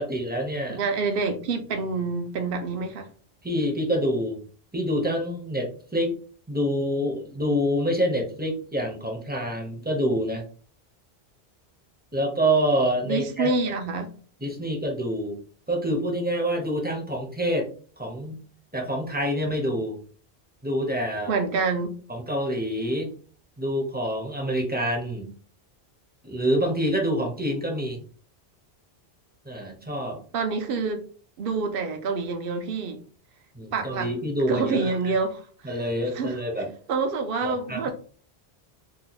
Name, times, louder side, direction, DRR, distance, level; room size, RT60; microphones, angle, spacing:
voice 1, 0.0-0.8 3.4-4.4 4.7-6.1 6.5-10.4 12.1-13.8 14.4-15.4 15.7-17.7 18.0-18.4 18.7-20.0 20.6-21.3 22.1-23.1 23.6-25.3 26.2-28.0 29.4-30.2 33.5-34.9 35.6-36.7 37.4-37.8, equal, 10° right, 0.5 m, -26 dB
voice 2, 0.7-3.1 13.0-14.1 21.3-22.0 30.3-31.0 31.4-33.0 33.7-34.1 34.5-35.7 36.1-36.4 36.9-37.9, right 4 dB, 65° right, 0.8 m, -27 dB
2.7 x 2.2 x 3.9 m
omnidirectional pair, 1.1 m